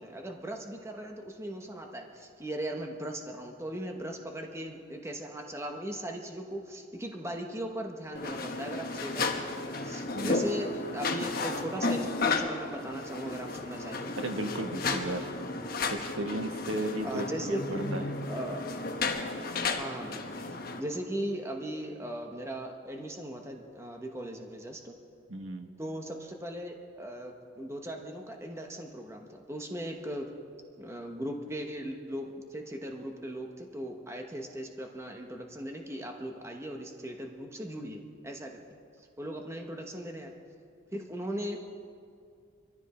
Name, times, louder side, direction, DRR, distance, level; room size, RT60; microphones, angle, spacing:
voice 1, 0.0-14.1 17.0-18.6 19.8-24.9 25.8-30.3 30.8-38.6 39.2-40.3 40.9-41.6, right 1 dB, 15° right, 3 dB, 1.1 m, -38 dB
sound 1, 8.1-20.8, left 3 dB, 45° left, 1.2 m, -33 dB
voice 2, 10.1-10.5 14.2-15.3 15.9-18.1 25.3-25.7, right 1 dB, 85° right, 5 dB, 1.3 m, -35 dB
24.0 x 14.0 x 4.3 m, 2.3 s
head